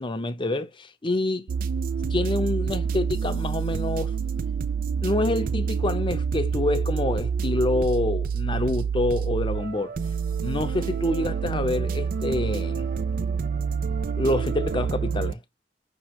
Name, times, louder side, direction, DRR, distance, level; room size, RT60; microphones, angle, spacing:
voice 1, 0.0-1.5 2.1-4.1 5.0-9.9 10.4-12.9 14.2-15.4, left 2 dB, 30° left, 0.7 m, -27 dB
sound 1, 1.5-15.3, right 6 dB, 50° right, 0.4 m, -27 dB
5.4 x 3.0 x 2.9 m
head